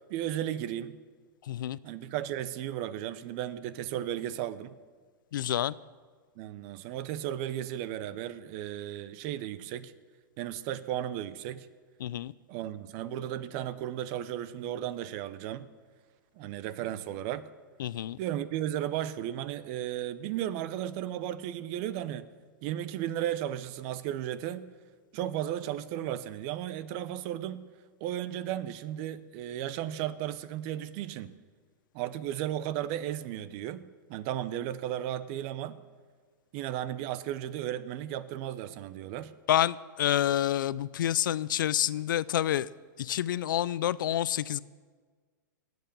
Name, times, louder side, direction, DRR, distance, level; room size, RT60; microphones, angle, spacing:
voice 1, 0.1-1.0 1.8-4.7 6.4-9.9 10.4-11.7 12.5-15.7 16.4-17.5 18.2-22.3 22.6-24.6 25.1-27.6 28.0-31.3 31.9-33.8 34.1-35.8 36.5-39.3, right 11 dB, 45° right, 0.8 m, -35 dB
voice 2, 1.5-1.8 5.3-5.7 12.0-12.3 17.8-18.2 39.5-42.7 43.0-44.6, left 12 dB, 80° left, 0.4 m, -28 dB
19.0 x 8.0 x 6.8 m
hypercardioid pair, 135°, 11 cm